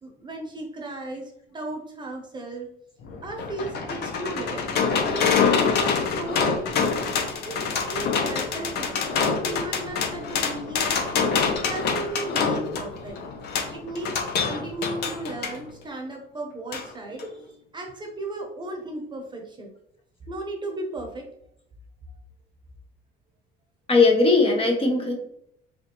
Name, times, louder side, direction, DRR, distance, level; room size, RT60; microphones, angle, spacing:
voice 1, 0.0-2.7 3.2-4.6 5.1-6.7 7.5-11.2 11.7-13.2 13.7-19.7 20.3-21.3, right 2 dB, 25° right, 1 dB, 1.0 m, -35 dB
sound 1, 3.0-15.6 16.7-16.9 17.2-17.3, left 5 dB, 65° left, 0.8 m, -26 dB
voice 2, 23.9-25.2, left 3 dB, 30° left, 1 dB, 1.0 m, -19 dB
3.8 x 3.2 x 3.0 m, 0.74 s
cardioid pair, 105°, 18 cm